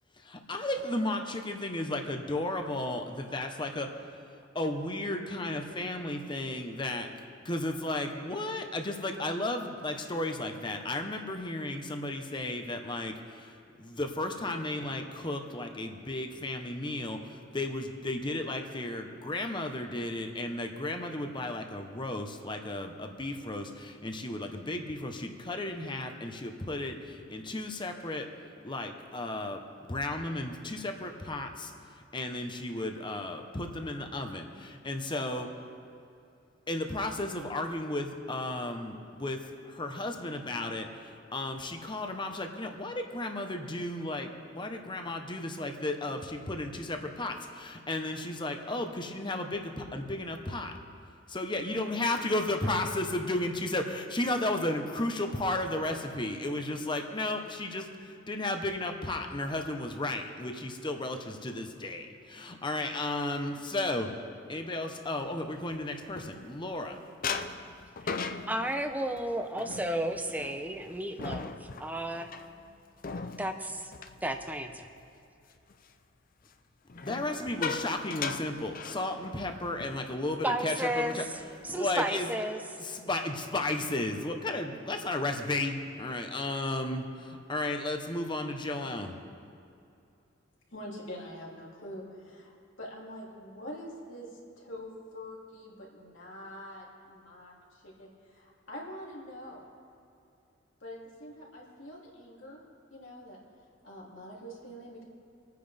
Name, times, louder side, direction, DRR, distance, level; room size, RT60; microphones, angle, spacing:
voice 1, 0.2-3.9 4.5-7.1 7.4-28.3 28.6-29.6 29.9-31.7 32.1-35.5 36.7-44.3 44.5-50.7 51.3-64.1 64.5-66.9 77.0-81.2 81.7-82.3 82.8-89.2, left 2 dB, 25° left, 4 dB, 1.1 m, -34 dB
sound 1, 65.4-66.8 67.2-75.1 75.4-75.7 76.9-79.5 79.8-80.0 80.3-80.6 81.1-81.8, left 5 dB, 45° left, 0.6 m, -39 dB
voice 2, 68.5-71.5 71.8-72.3 73.4-73.9 74.2-74.9 80.4-81.2 81.6-82.6, right 1 dB, 10° right, 6 dB, 0.8 m, -32 dB
voice 3, 90.7-99.7 100.8-102.6 102.9-103.4 103.8-105.0, equal, 75° left, -4 dB, 3.1 m, -45 dB
27.0 x 9.5 x 3.5 m, 2.6 s
head